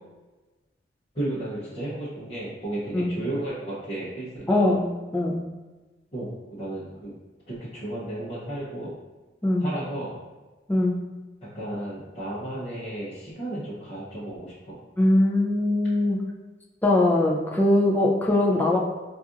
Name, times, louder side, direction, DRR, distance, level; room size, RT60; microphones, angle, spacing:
voice 1, 1.1-4.7 6.1-7.2 7.5-9.0 9.6-10.1 11.4-14.8, right 1 dB, 30° left, -11 dB, 0.8 m, -33 dB
voice 2, 4.5-4.9 5.1-5.4 9.4-9.7 10.7-11.0 15.0-16.2 16.8-18.8, left 1 dB, 10° left, -2 dB, 0.4 m, -21 dB
4.2 x 2.4 x 2.5 m, 1.2 s
head